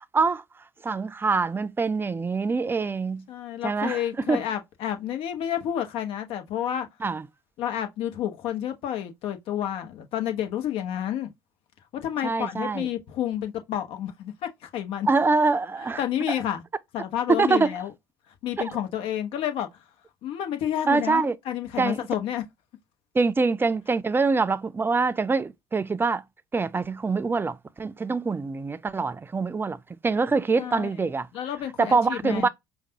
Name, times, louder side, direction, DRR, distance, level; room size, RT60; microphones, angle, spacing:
voice 1, 0.8-3.2 3.6-4.0 4.3-4.4 7.0-7.2 12.2-12.9 15.1-16.0 17.3-17.7 20.9-21.4 21.8-22.0 23.1-26.2 26.5-29.8 30.0-31.3 31.8-32.5, right 4 dB, 20° right, 0.5 m, -24 dB
voice 2, 3.3-6.9 7.6-11.3 11.9-15.1 16.0-16.6 16.9-17.9 18.4-19.7 20.2-22.4 30.6-30.9 31.3-32.5, left 10 dB, 60° left, 1.1 m, -30 dB
5.1 x 2.3 x 2.8 m
hypercardioid pair, 60°, 10 cm